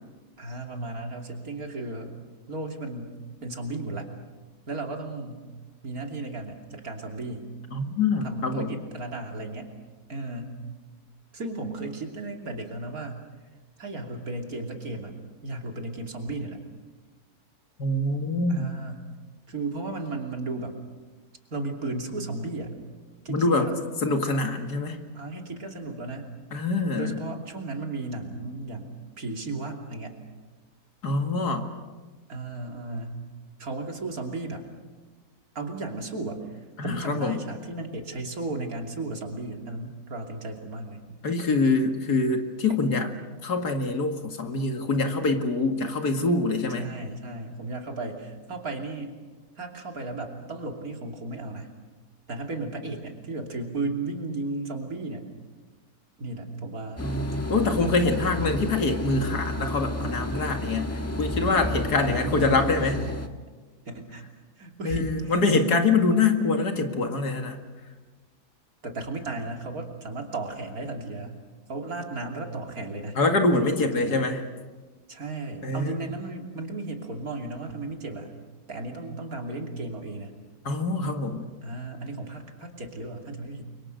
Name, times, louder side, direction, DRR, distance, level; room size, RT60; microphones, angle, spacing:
voice 1, 0.4-2.2 2.5-4.1 4.7-5.5 5.8-7.5 8.2-9.7 10.1-10.6 11.3-13.1 13.8-15.1 15.4-16.6 18.5-19.1 19.5-20.8 21.5-22.7 23.2-23.8 25.1-26.3 26.9-30.2 32.3-33.2 33.6-34.6 35.5-36.4 36.8-41.0 46.7-49.2 49.6-51.7 52.3-55.3 56.2-57.1 57.6-57.8 58.0-58.3 62.0-63.1 63.9-64.2 64.6-65.8 68.8-71.3 71.7-73.2 73.9-74.3 75.1-78.3 78.7-80.3 81.6-83.7, right 2 dB, 65° right, 3 dB, 3.4 m, -35 dB
voice 2, 7.7-8.8 17.8-18.7 23.3-23.7 24.0-25.0 26.5-27.2 31.0-31.7 36.8-37.4 41.2-43.1 43.4-46.9 57.0-63.1 64.8-67.6 73.2-74.4 75.6-76.1 80.6-81.5, left 3 dB, 80° left, 5 dB, 2.6 m, -25 dB
sound 1, 57.0-63.3, left 1 dB, 10° left, 1.3 m, -32 dB
29.5 x 24.0 x 6.6 m, 1.3 s
omnidirectional pair, 1.7 m